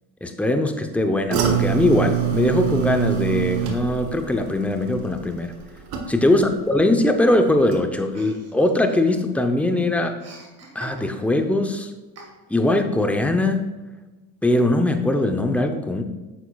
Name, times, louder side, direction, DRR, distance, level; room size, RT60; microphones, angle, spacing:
voice 1, 0.2-5.5 6.1-10.2 10.7-11.9 12.5-13.6 14.4-16.0, left 1 dB, 5° left, 6 dB, 0.7 m, -21 dB
sound 1, 1.3-6.5 6.8-7.3 7.7-7.8, right 9 dB, 65° right, 1.3 m, -25 dB
Chuckle chortle, 8.1-9.5 9.8-11.4 12.2-12.7, right 2 dB, 40° right, 1.9 m, -44 dB
9.1 x 6.9 x 2.4 m, 1.2 s
supercardioid pair, 100°, 38 cm